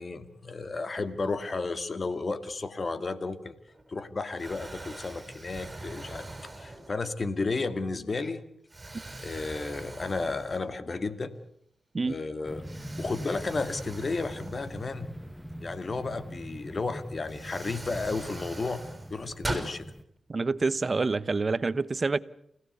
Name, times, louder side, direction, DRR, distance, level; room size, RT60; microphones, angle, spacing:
voice 1, 0.0-3.6 3.9-6.3 6.6-8.4 9.2-11.3 12.1-12.6 13.0-15.1 15.6-18.8 19.1-19.9, left 3 dB, 50° left, 2.2 m, -33 dB
Explosion, 3.7-4.0 4.4-7.2 7.8-8.0 8.7-10.9 11.3-11.4 12.6-15.3 16.7-16.8 17.2-19.7, right 2 dB, 25° right, 6.5 m, -41 dB
sound 1, 12.5-20.0, equal, 5° left, 1.6 m, -42 dB
voice 2, 20.3-22.2, right 3 dB, 45° right, 1.0 m, -27 dB
29.0 x 16.5 x 8.1 m
cardioid pair, 55°, 0 cm